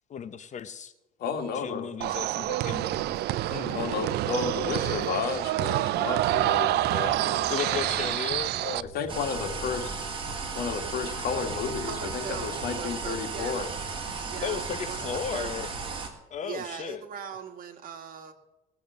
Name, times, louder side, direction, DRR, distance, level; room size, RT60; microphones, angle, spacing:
voice 1, 0.1-0.9 1.5-2.9 3.5-3.9 7.5-9.1 14.4-15.7 16.3-17.0, left 8 dB, 45° left, 12 dB, 0.8 m, -35 dB
voice 2, 1.2-1.9 3.7-7.9 8.9-10.0 10.6-13.7, left 6 dB, 70° left, 5 dB, 2.2 m, -32 dB
sound 1, 2.0-8.8, right 15 dB, 75° right, 0.5 m, -27 dB
sound 2, 2.8-12.7, left 2 dB, 15° left, 4.8 m, -47 dB
sound 3, 9.1-16.1, right 4 dB, 30° right, 3.1 m, -35 dB
voice 3, 9.4-10.0 11.8-13.6 14.3-15.5 16.4-18.3, right 7 dB, 55° right, 6 dB, 2.0 m, -40 dB
19.0 x 7.1 x 8.2 m, 0.96 s
cardioid pair, 110°, 17 cm